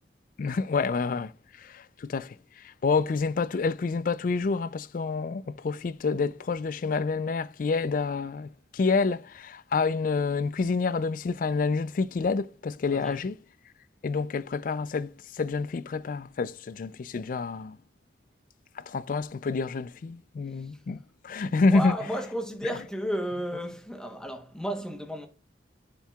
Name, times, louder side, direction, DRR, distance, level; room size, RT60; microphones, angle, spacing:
voice 1, 0.4-1.3 1.6-2.3 2.8-13.4 14.0-17.8 18.8-21.0 21.2-22.0, left 4 dB, 50° left, 0.3 m, -28 dB
voice 2, 21.7-25.3, equal, 5° left, 1.0 m, -33 dB
10.0 x 4.5 x 2.3 m
head